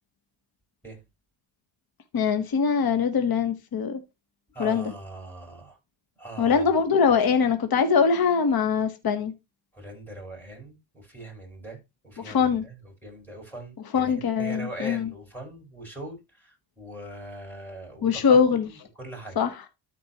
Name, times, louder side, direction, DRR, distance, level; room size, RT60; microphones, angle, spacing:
voice 1, 2.1-4.0 4.6-4.9 6.4-9.3 12.2-12.6 13.9-15.1 18.0-18.7 19.4-19.6, left 6 dB, 50° left, 1.3 m, -22 dB
voice 2, 4.5-5.8 6.2-6.7 7.1-7.2 9.7-19.4, right 1 dB, 5° left, 6.2 m, -41 dB
13.0 x 4.5 x 3.0 m
cardioid pair, 85°, 47 cm